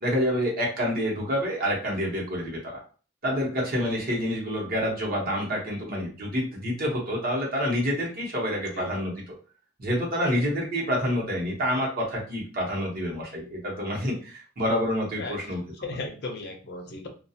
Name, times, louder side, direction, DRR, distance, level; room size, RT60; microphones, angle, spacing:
voice 1, 0.0-2.8 3.2-9.2 9.8-15.6, equal, 45° right, -2 dB, 1.0 m, -28 dB
voice 2, 15.8-17.1, left 3 dB, 55° left, 3 dB, 0.6 m, -36 dB
2.3 x 2.3 x 2.7 m, 0.38 s
head